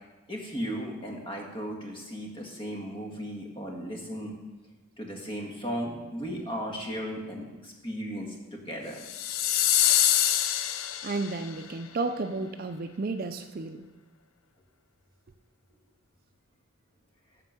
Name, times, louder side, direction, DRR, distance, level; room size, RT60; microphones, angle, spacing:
voice 1, 0.3-4.3 5.0-9.0, equal, 25° left, 0 dB, 1.7 m, -36 dB
sound 1, 9.0-11.5, left 11 dB, 85° left, 0.5 m, -25 dB
voice 2, 11.0-13.9, right 3 dB, 45° right, 8 dB, 0.4 m, -32 dB
11.0 x 4.4 x 7.5 m, 1.2 s
head